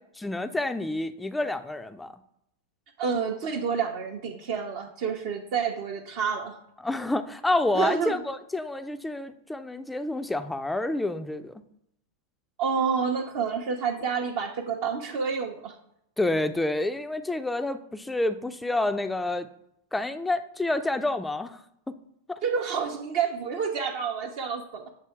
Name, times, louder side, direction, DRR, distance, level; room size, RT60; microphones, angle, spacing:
voice 1, 0.2-2.1 6.8-11.6 16.2-19.5 19.9-21.6 21.9-22.0 22.3-22.4, left 2 dB, 5° left, 10 dB, 0.4 m, -28 dB
voice 2, 3.0-6.6 7.7-8.2 12.6-15.8 22.4-24.9, right 6 dB, 50° right, 1 dB, 0.6 m, -29 dB
7.5 x 2.7 x 4.7 m, 0.79 s
figure-of-eight pair, 90°, 0 cm